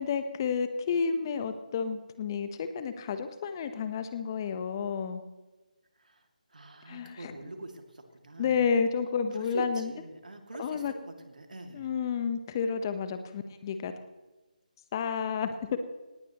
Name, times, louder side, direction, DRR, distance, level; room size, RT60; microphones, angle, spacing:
voice 1, 0.0-5.2 6.9-7.3 8.4-9.9 10.6-10.9 11.7-13.9 14.9-15.8, left 6 dB, 30° left, 9 dB, 1.1 m, -31 dB
voice 2, 6.5-8.7 9.3-11.9, right 2 dB, 70° right, 5 dB, 2.5 m, -44 dB
18.5 x 17.0 x 3.1 m, 1.2 s
figure-of-eight pair, 155°, 4 cm